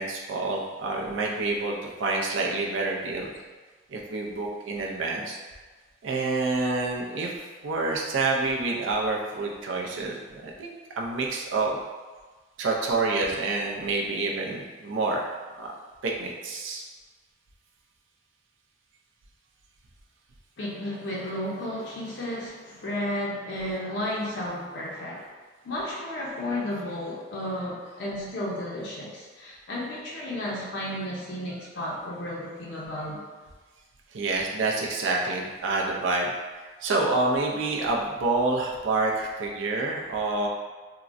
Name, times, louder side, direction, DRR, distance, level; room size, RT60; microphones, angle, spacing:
voice 1, 0.0-3.3 3.9-5.4 6.0-7.3 7.6-11.8 12.6-15.3 15.5-15.7 16.0-16.8 34.1-36.3 36.8-40.5, right 3 dB, 75° right, -1 dB, 0.5 m, -28 dB
voice 2, 20.6-25.3 25.6-33.2, left 1 dB, 60° left, -5 dB, 0.5 m, -33 dB
3.6 x 2.0 x 2.5 m, 1.4 s
head